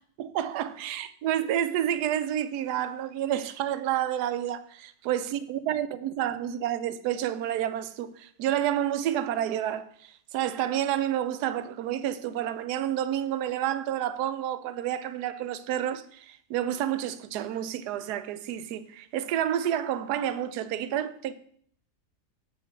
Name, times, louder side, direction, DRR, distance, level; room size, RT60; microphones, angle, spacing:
voice 1, 0.2-21.3, right 11 dB, 85° right, 1.2 m, -29 dB
8.0 x 4.6 x 5.7 m
omnidirectional pair, 1.7 m